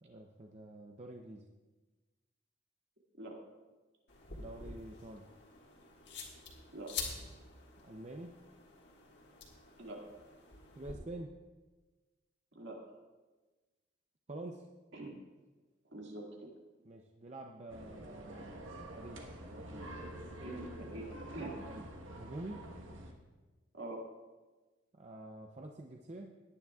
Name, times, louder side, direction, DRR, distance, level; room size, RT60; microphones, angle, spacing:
voice 1, 0.0-1.5 4.3-5.3 7.8-8.4 10.7-11.3 14.3-14.6 16.8-19.9 21.7-21.9 22.1-22.7 24.9-26.4, right 1 dB, 35° right, 2 dB, 0.5 m, -48 dB
sound 1, 4.1-10.9, left 5 dB, 60° left, 1.7 m, -47 dB
voice 2, 15.9-16.5 20.4-21.1 21.3-21.5 23.7-24.0, right 2 dB, 70° right, -1 dB, 2.0 m, -44 dB
sound 2, 17.7-23.1, right 1 dB, 85° right, 1.3 m, -47 dB
18.0 x 9.7 x 2.4 m, 1.2 s
head